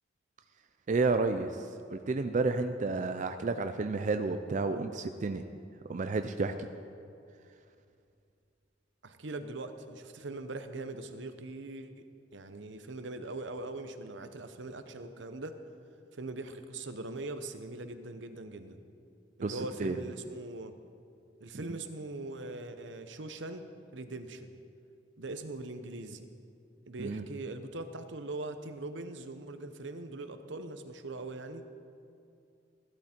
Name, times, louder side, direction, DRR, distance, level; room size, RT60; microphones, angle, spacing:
voice 1, 0.9-5.4 5.9-6.7 19.4-20.0 27.0-27.2, right 3 dB, 40° right, 8 dB, 0.4 m, -31 dB
voice 2, 9.0-11.9 12.3-15.6 16.1-18.8 19.4-20.7 21.4-23.6 23.9-24.6 25.2-26.3 26.9-31.6, right 2 dB, 75° right, 9 dB, 0.8 m, -41 dB
15.5 x 12.0 x 4.4 m, 2.5 s
head